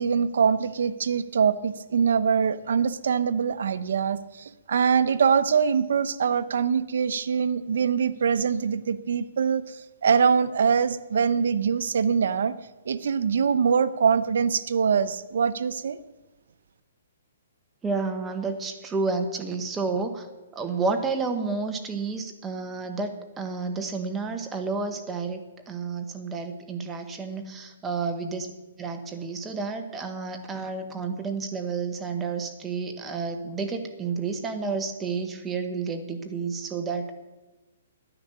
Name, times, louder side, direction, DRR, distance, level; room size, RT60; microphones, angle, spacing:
voice 1, 0.0-9.8 10.0-12.5 12.9-16.0, right 6 dB, 70° right, 12 dB, 0.8 m, -23 dB
voice 2, 17.8-20.3 20.5-37.1, right 4 dB, 10° right, 6 dB, 1.1 m, -30 dB
12.0 x 10.0 x 6.7 m, 1.1 s
hypercardioid pair, 160°, 0 cm